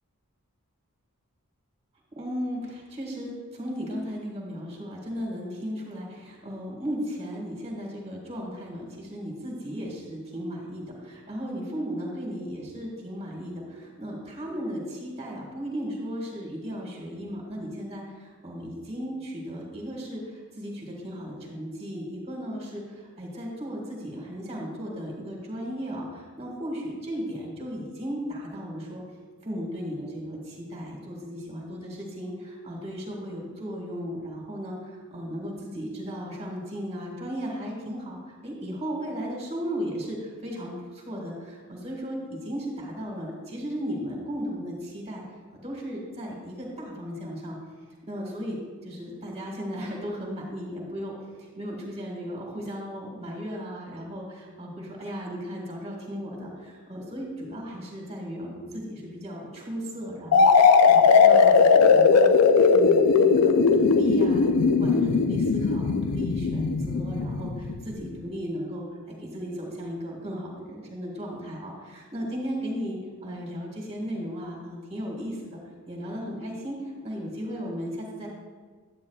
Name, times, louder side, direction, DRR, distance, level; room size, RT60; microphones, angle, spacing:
voice 1, 2.1-29.0 29.4-45.2 45.6-47.6 48.0-62.3 62.7-64.5 64.8-75.6 75.9-78.3, equal, 30° right, -1 dB, 1.6 m, -35 dB
sound 1, 60.3-68.0, left 5 dB, 90° left, 0.5 m, -19 dB
9.6 x 8.7 x 2.3 m, 1.5 s
head